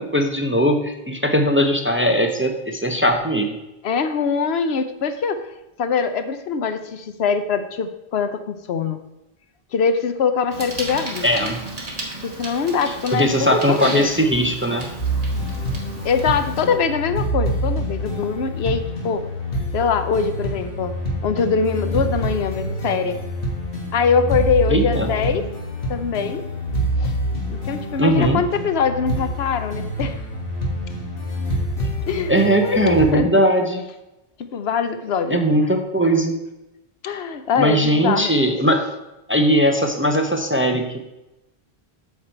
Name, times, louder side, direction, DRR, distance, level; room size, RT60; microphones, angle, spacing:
voice 1, 0.0-3.6 11.2-11.6 13.1-14.8 24.7-25.1 28.0-28.4 32.3-33.8 35.3-36.3 37.6-38.9 39.3-41.0, equal, 15° right, 4 dB, 0.6 m, -19 dB
voice 2, 3.8-5.4 5.8-9.0 9.7-11.3 12.2-14.1 16.0-19.3 19.7-20.9 21.2-23.2 23.9-25.5 25.9-26.4 27.0-27.1 27.5-30.2 32.1-33.4 34.5-35.4 37.0-38.3, left 5 dB, 90° left, 9 dB, 1.0 m, -23 dB
Bicycle, 10.5-16.6, right 1 dB, 40° right, 1.5 m, -34 dB
sound 1, 15.0-33.1, equal, 65° left, 1.8 m, -26 dB
7.9 x 6.7 x 4.4 m, 0.95 s
omnidirectional pair, 1.0 m